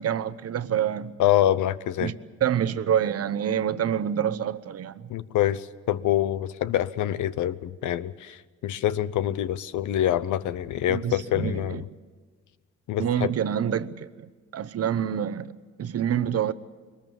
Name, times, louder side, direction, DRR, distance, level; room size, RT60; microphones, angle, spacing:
voice 1, 0.0-1.2 2.0-2.2 2.4-4.9 10.9-11.8 13.0-14.3 14.5-16.5, right 9 dB, 55° right, 1.0 m, -27 dB
voice 2, 1.2-2.1 5.1-11.8 12.9-13.1, left 12 dB, 75° left, 0.8 m, -25 dB
22.5 x 20.0 x 7.1 m
cardioid pair, 90°, 30 cm